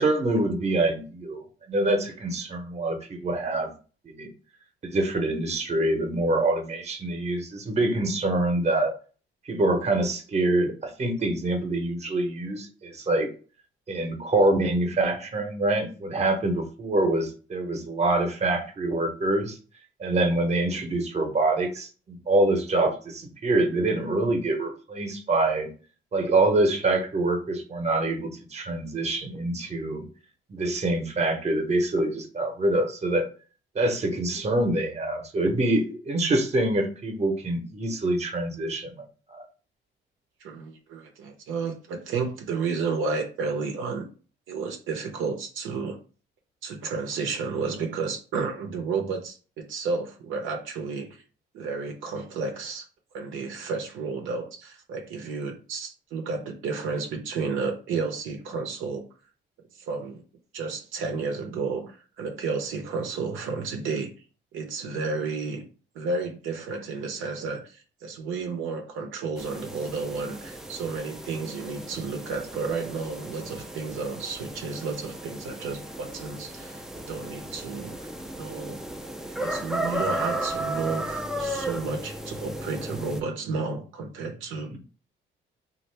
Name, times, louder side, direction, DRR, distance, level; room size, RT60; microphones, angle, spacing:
voice 1, 0.0-3.7 4.0-4.3 4.8-8.9 9.5-13.3 13.9-19.6 20.0-25.7 26.1-30.1 30.5-33.3 33.7-39.0 39.3-39.4 84.7-84.8, right 2 dB, 35° right, 5 dB, 0.8 m, -25 dB
voice 2, 40.4-44.1 44.5-46.0 46.6-51.2 51.5-52.9 53.1-59.1 59.7-60.2 60.5-64.1 64.5-65.7 65.9-78.8 79.3-84.8, right 4 dB, 85° right, 3 dB, 0.6 m, -32 dB
sound 1, 69.4-83.2, right 1 dB, ahead, 0.4 m, -35 dB
3.0 x 2.4 x 3.2 m, 0.38 s
cardioid pair, 90°, 20 cm